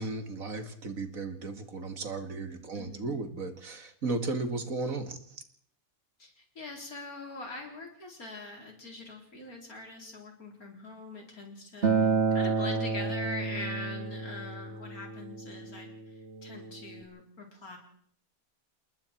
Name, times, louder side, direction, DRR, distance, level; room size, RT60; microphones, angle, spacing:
voice 1, 0.0-5.2, right 3 dB, 70° right, 7 dB, 2.4 m, -35 dB
voice 2, 2.7-3.2 6.2-15.9 16.4-17.8, left 2 dB, 80° left, 2 dB, 4.6 m, -42 dB
Acoustic guitar, 11.8-17.0, right 4 dB, 50° right, 2.6 m, -30 dB
29.0 x 20.0 x 4.5 m, 0.62 s
omnidirectional pair, 1.5 m